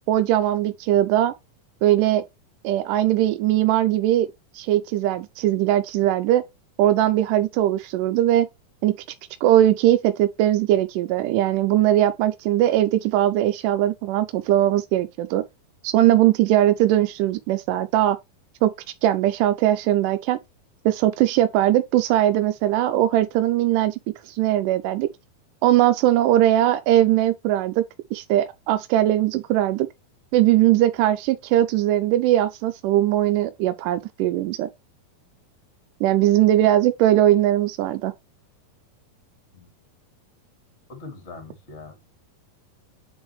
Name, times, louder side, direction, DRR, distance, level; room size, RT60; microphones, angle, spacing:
voice 1, 0.1-1.3 1.8-2.2 2.6-4.3 4.5-6.4 6.8-8.5 8.8-9.0 9.4-15.4 15.8-18.2 18.6-18.7 19.0-20.4 20.9-24.0 24.3-25.1 25.6-27.8 28.1-29.9 30.3-34.7 36.0-38.1, right 13 dB, 80° right, 1.9 m, -20 dB
voice 2, 40.9-42.0, left 3 dB, 25° left, 1.9 m, -41 dB
9.1 x 3.9 x 3.1 m
omnidirectional pair, 4.2 m